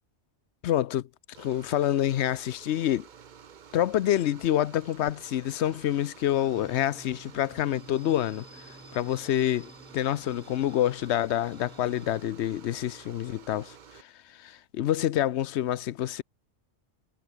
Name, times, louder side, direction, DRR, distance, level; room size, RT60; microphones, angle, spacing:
voice 1, 0.6-1.1 1.4-3.1 3.7-8.4 8.9-16.2, left 12 dB, 75° left, 0.9 m, -27 dB
sound 1, 1.3-14.0, right 7 dB, 50° right, 0.8 m, -51 dB
sound 2, 6.3-12.2, equal, 5° left, 3.3 m, -52 dB
omnidirectional pair, 1.2 m